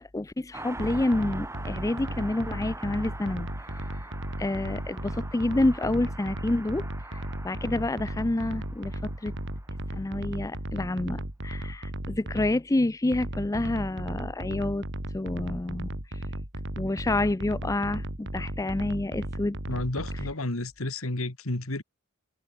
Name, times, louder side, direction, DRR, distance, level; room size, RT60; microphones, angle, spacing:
voice 1, 0.0-3.5 4.4-9.3 9.9-14.8 15.1-16.2 16.8-19.6, left 2 dB, 15° left, 0.5 m, -28 dB
Car passing by, 0.5-10.5 10.7-10.8, right 2 dB, 15° right, 3.4 m, -44 dB
sound 1, 0.8-12.6 13.1-20.3, right 1 dB, 55° right, 4.2 m, -35 dB
voice 2, 19.7-21.8, left 2 dB, 70° left, 2.3 m, -31 dB
head